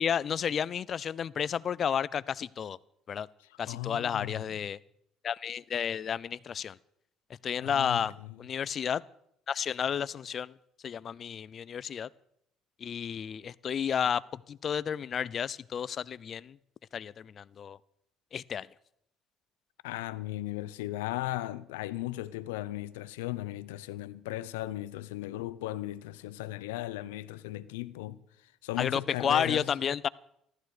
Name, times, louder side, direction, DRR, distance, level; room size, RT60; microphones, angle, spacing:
voice 1, 0.0-2.8 3.1-3.3 3.6-4.8 5.2-6.8 7.4-9.0 9.5-10.6 10.8-12.1 12.8-16.6 16.9-17.8 18.3-18.7 28.8-30.1, left 8 dB, 50° left, 0.5 m, -32 dB
voice 2, 3.7-4.6 7.6-8.0 19.8-29.6, left 16 dB, 85° left, 0.6 m, -37 dB
15.0 x 13.0 x 6.6 m
hypercardioid pair, 60°, 0 cm